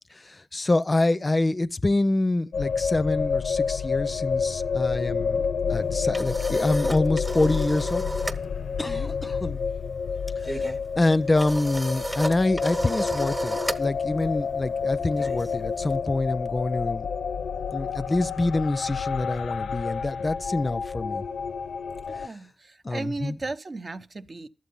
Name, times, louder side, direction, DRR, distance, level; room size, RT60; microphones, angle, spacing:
voice 1, 0.1-5.4 5.7-8.1 8.8-9.6 10.4-17.1 17.7-21.3 22.1-22.4 22.8-23.4, left 2 dB, 35° left, 0.5 m, -26 dB
sound 1, 2.5-22.3, left 6 dB, 85° left, 0.5 m, -29 dB
sound 2, 5.8-8.5 8.7-9.0 9.3-16.0, right 1 dB, 15° right, 1.0 m, -34 dB
voice 2, 22.1-24.5, right 3 dB, 50° right, 0.7 m, -35 dB
11.5 x 7.7 x 5.3 m
cardioid pair, 45°, 0 cm